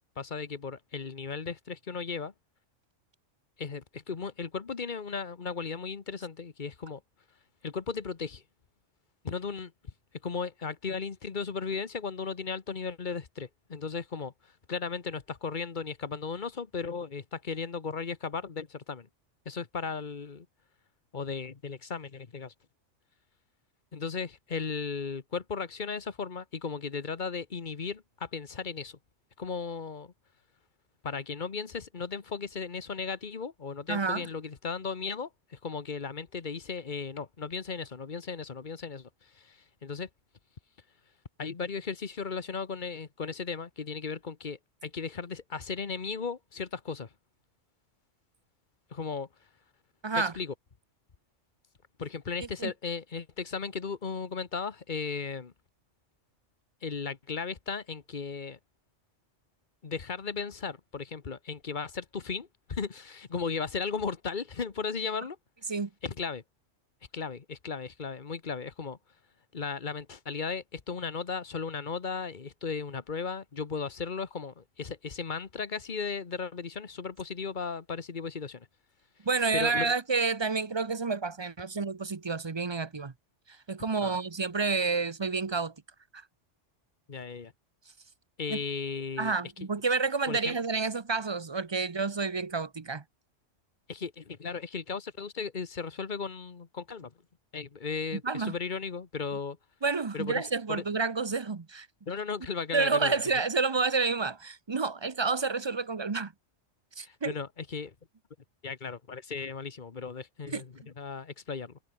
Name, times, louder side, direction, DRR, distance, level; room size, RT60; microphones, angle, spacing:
voice 1, 0.2-2.3 3.6-7.0 7.6-8.4 9.2-9.7 10.2-19.1 19.4-20.5 21.1-22.5 23.9-29.0 29.4-30.1 31.0-40.1 41.4-47.1 48.9-49.3 50.1-50.5 52.0-55.5 56.8-58.6 59.8-65.4 66.0-66.4 67.1-69.0 69.5-78.7 79.5-79.9 84.0-84.2 87.1-87.5 88.4-89.3 90.3-90.6 93.9-97.1 97.5-99.6 100.1-100.8 102.1-103.2 107.0-107.9 108.6-111.8, left 5 dB, 40° left, 1.3 m, -36 dB
voice 2, 33.9-34.2 50.0-50.3 52.6-52.7 65.7-65.9 79.2-83.1 83.5-85.7 86.1-86.2 88.5-88.6 89.2-93.0 98.2-98.5 99.8-101.9 102.7-106.3 107.0-107.3 110.5-110.6, right 4 dB, 25° right, 0.7 m, -29 dB
omnidirectional pair, 1.3 m